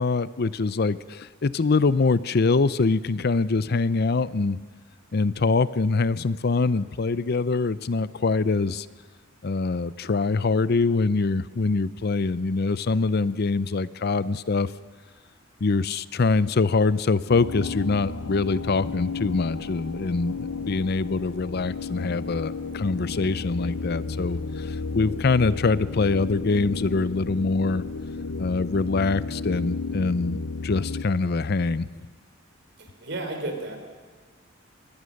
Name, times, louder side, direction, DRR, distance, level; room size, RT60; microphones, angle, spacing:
voice 1, 0.0-4.6 5.1-8.9 9.4-14.7 15.6-27.8 28.4-31.9, left 3 dB, 50° left, 17 dB, 0.5 m, -24 dB
sound 1, 17.3-31.0, left 4 dB, 85° left, 0.9 m, -33 dB
voice 2, 32.8-33.8, right 2 dB, 60° right, 5 dB, 4.1 m, -33 dB
24.0 x 19.5 x 6.5 m, 1.5 s
head